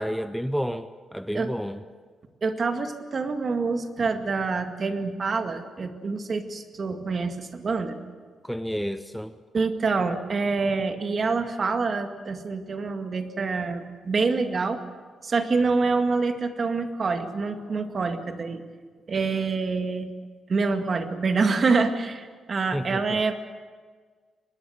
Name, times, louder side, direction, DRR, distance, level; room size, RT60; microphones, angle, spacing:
voice 1, 0.0-1.8 8.4-9.3 17.7-17.8 22.7-23.2, equal, ahead, 11 dB, 0.6 m, -31 dB
voice 2, 2.4-8.0 9.5-14.8 15.2-18.6 19.1-20.1 20.5-23.3, right 4 dB, 40° right, 6 dB, 2.0 m, -26 dB
24.0 x 20.0 x 7.9 m, 1.5 s
cardioid pair, 130°, 0 cm